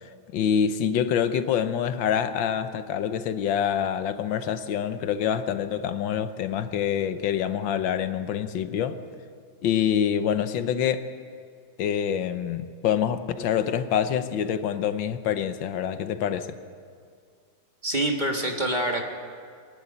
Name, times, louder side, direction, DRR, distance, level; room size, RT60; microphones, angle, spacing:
voice 1, 0.3-9.0 9.6-11.1 11.8-16.6, left 8 dB, 85° left, 11 dB, 1.6 m, -26 dB
voice 2, 17.8-19.0, right 1 dB, 25° right, 1 dB, 1.6 m, -26 dB
24.0 x 11.0 x 9.8 m, 2.2 s
omnidirectional pair, 2.0 m